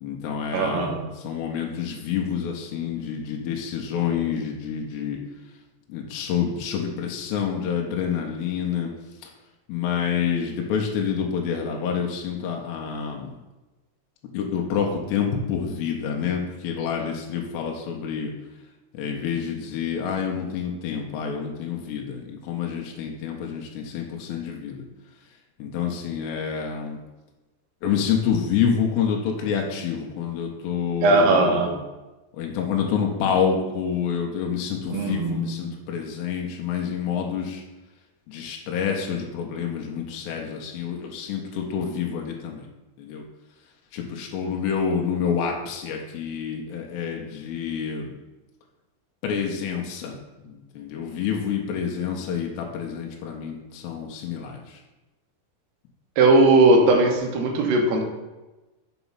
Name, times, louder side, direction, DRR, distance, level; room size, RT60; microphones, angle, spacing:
voice 1, 0.0-5.2 5.9-8.9 9.2-9.3 9.7-13.3 14.3-18.3 18.9-24.8 25.6-27.0 27.8-31.8 32.4-37.6 38.3-42.7 43.0-43.2 43.9-48.2 49.2-50.2 50.4-54.8, left 7 dB, 80° left, 1 dB, 2.8 m, -28 dB
voice 2, 0.5-1.1 31.0-31.7 34.9-35.6 56.2-58.0, right 2 dB, 75° right, 2 dB, 2.8 m, -19 dB
7.0 x 4.2 x 5.5 m, 1.1 s
omnidirectional pair, 5.0 m